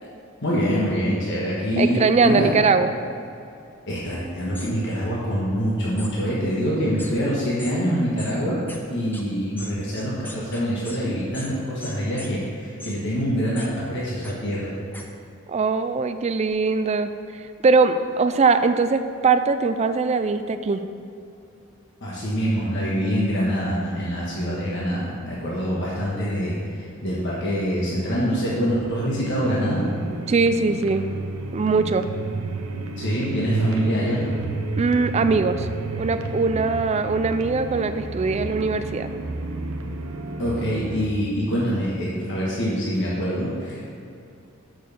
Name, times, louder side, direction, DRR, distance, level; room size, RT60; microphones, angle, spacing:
voice 1, 0.4-2.5 3.9-8.6 8.9-14.7 22.0-29.8 33.0-34.3 40.4-43.8, equal, 60° left, -6 dB, 1.4 m, -25 dB
voice 2, 1.8-2.9 15.5-20.8 30.3-31.1 31.5-32.0 34.8-39.1, right 4 dB, 30° right, 9 dB, 0.3 m, -21 dB
sound 1, 4.6-4.7 6.0-6.1 7.0-7.1 7.6-7.8 8.2-8.3 8.7-8.8 9.1-9.2 9.6-11.0 11.3-11.5 11.8-12.3 12.8-13.0 13.6-13.7 14.2-14.3 14.9-15.0, left 2 dB, 10° left, 0.7 m, -39 dB
sound 2, 29.3-41.1, right 3 dB, 90° right, 0.8 m, -31 dB
6.3 x 6.3 x 6.9 m, 2.6 s
head